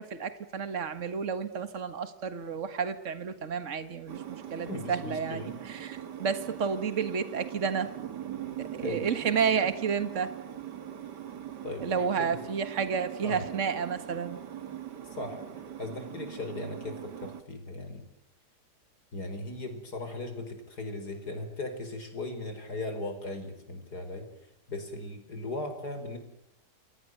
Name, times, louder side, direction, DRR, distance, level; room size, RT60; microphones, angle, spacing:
voice 1, 0.0-5.4 5.7-7.9 8.6-10.3 11.8-14.4, right 6 dB, 50° right, 11 dB, 1.9 m, -31 dB
sound 1, 4.1-17.4, right 10 dB, 85° right, 2.1 m, -41 dB
voice 2, 4.7-5.6 8.8-9.1 11.6-12.3 13.2-13.4 15.1-15.4 15.8-18.0 19.1-24.3 24.7-26.2, left 2 dB, 70° left, 7 dB, 5.5 m, -38 dB
28.5 x 22.5 x 7.9 m, 0.81 s
omnidirectional pair, 1.8 m